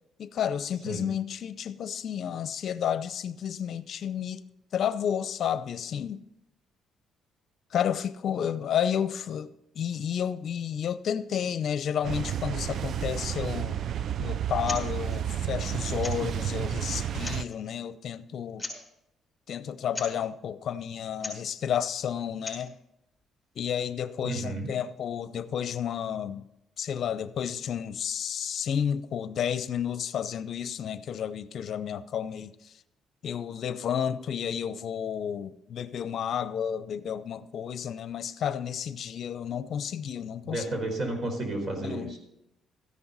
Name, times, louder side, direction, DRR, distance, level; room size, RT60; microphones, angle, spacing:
voice 1, 0.2-4.4 4.7-6.2 7.7-13.8 14.2-18.7 19.5-22.7 23.6-26.5 26.8-32.7 33.2-40.6 41.8-42.2, left 8 dB, 65° left, 0.6 m, -31 dB
sound 1, 12.0-17.4, right 10 dB, 65° right, 0.4 m, -31 dB
sound 2, 14.6-14.9 15.1-15.2 16.0-16.4 17.1-17.6 18.6-18.9 19.9-20.2 21.1-21.5 22.3-22.7, left 2 dB, 10° left, 5.9 m, -38 dB
voice 2, 24.2-24.7 40.4-42.2, right 2 dB, 45° right, 4.4 m, -32 dB
14.0 x 11.0 x 4.1 m
cardioid pair, 80°, 0 cm